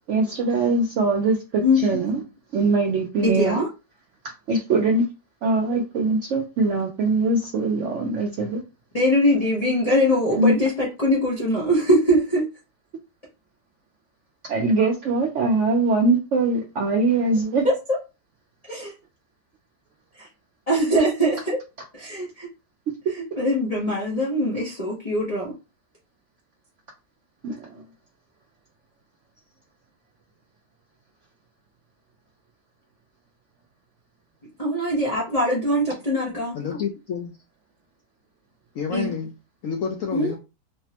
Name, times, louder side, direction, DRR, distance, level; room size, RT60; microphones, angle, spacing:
voice 1, 0.1-2.2 2.5-3.6 4.5-5.0 5.4-8.6 10.3-10.5 14.5-17.7 27.4-27.8, right 3 dB, 70° right, 1 dB, 0.7 m, -22 dB
voice 2, 1.6-2.0 3.2-3.7 8.9-12.4 17.6-17.7 18.7-18.9 20.2-20.3 20.7-21.6 21.9-22.5 23.1-25.5 34.6-36.6 38.9-39.1 40.1-40.3, equal, 45° left, -5 dB, 0.5 m, -22 dB
voice 3, 36.5-37.3 38.7-39.3 39.6-40.4, left 6 dB, 70° left, 2 dB, 0.8 m, -28 dB
3.4 x 2.0 x 2.8 m, 0.28 s
omnidirectional pair, 1.8 m